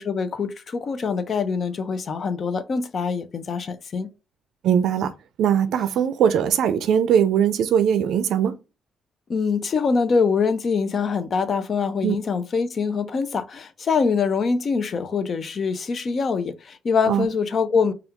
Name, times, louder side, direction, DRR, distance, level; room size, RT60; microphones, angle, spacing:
voice 1, 0.0-4.1 9.3-17.9, left 5 dB, 40° left, 0.5 m, -24 dB
voice 2, 4.6-5.1 5.4-8.6 12.0-12.2 17.1-17.3, right 9 dB, 75° right, 0.4 m, -20 dB
3.5 x 2.3 x 2.8 m
cardioid pair, 135°, 0 cm